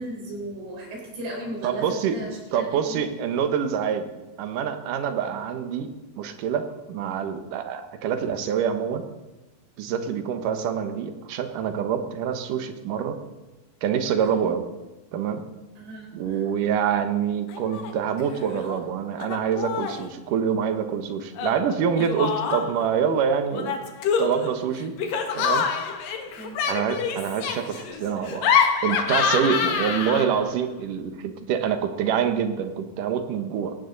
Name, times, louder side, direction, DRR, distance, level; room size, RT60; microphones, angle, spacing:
voice 1, 0.0-3.1 15.8-16.4 26.4-26.6, right 1 dB, 80° right, -2 dB, 6.8 m, -36 dB
voice 2, 1.6-2.2 2.5-4.1 4.4-5.9 6.2-9.0 9.8-13.2 13.8-14.6 15.1-15.4 16.1-23.8 24.2-24.9 25.3-25.7 26.7-28.5 28.8-33.8, right 7 dB, 65° right, 7 dB, 2.5 m, -26 dB
Laughter, 17.5-17.9 18.2-18.8 19.2-20.1 21.4-22.9 23.5-30.5, left 6 dB, 65° left, 2.9 m, -26 dB
18.5 x 15.5 x 4.0 m, 1.1 s
omnidirectional pair, 4.5 m